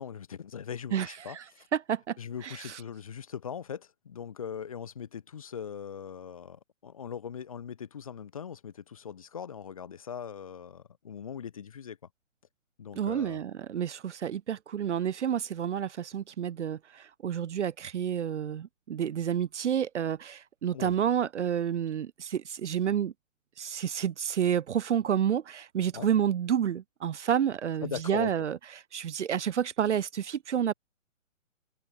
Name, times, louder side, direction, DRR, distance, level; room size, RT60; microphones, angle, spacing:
voice 1, 0.0-1.6 2.2-12.0 12.8-13.4 20.7-20.9 25.9-26.1 27.8-28.3, left 7 dB, 25° left, 1.0 m, -40 dB
voice 2, 0.9-1.4 1.7-2.2 2.4-2.8 12.9-23.1 23.6-28.6 28.9-30.7, right 9 dB, 60° right, 0.6 m, -29 dB
hypercardioid pair, 175°, 40 cm